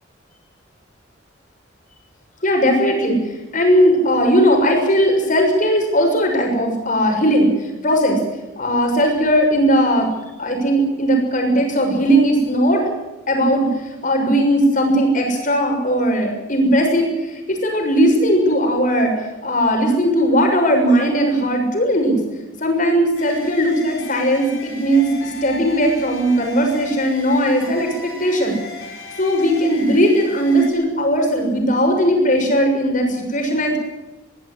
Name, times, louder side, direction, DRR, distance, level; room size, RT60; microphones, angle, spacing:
voice 1, 2.4-8.2 8.6-10.1 10.4-12.9 13.3-19.1 19.4-22.2 22.6-28.6 29.2-33.8, equal, 40° left, 3 dB, 6.7 m, -18 dB
sound 1, 23.2-30.7, left 4 dB, 85° left, 5.7 m, -36 dB
22.0 x 15.5 x 9.9 m, 1.0 s
head